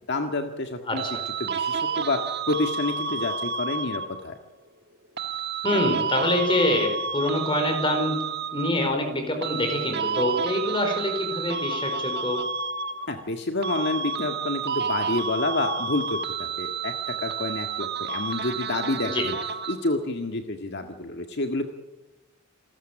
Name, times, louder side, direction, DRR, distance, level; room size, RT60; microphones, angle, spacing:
voice 1, 0.1-1.0 1.4-2.2 2.5-4.3 13.1-16.9 17.2-19.4 19.7-21.7, left 2 dB, 55° left, 5 dB, 1.8 m, -28 dB
voice 2, 0.9-1.2 5.6-8.2 8.5-12.4 19.0-19.2, left 1 dB, 25° left, 5 dB, 4.7 m, -25 dB
sound 1, 1.0-4.3 5.2-9.0 9.4-13.4 13.6-20.0, right 5 dB, 50° right, 1.5 m, -30 dB
28.5 x 14.0 x 9.0 m, 1.1 s
head